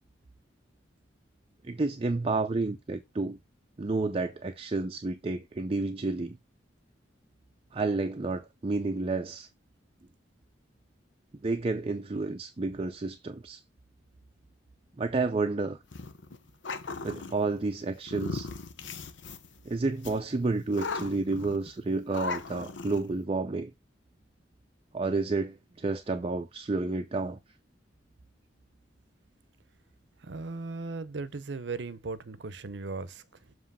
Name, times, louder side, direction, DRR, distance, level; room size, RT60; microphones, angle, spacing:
voice 1, 1.6-3.4 3.8-6.4 7.7-9.5 11.4-13.6 15.0-15.8 17.0-18.5 19.7-23.7 24.9-27.4, right 3 dB, 30° right, 0.5 m, -30 dB
sound 1, 15.9-17.3 18.1-19.6 20.0-20.2 20.7-21.7 22.1-23.1, left 4 dB, 75° left, 0.9 m, -37 dB
voice 2, 30.2-33.6, right 3 dB, 70° right, 0.7 m, -37 dB
7.4 x 3.1 x 5.4 m
head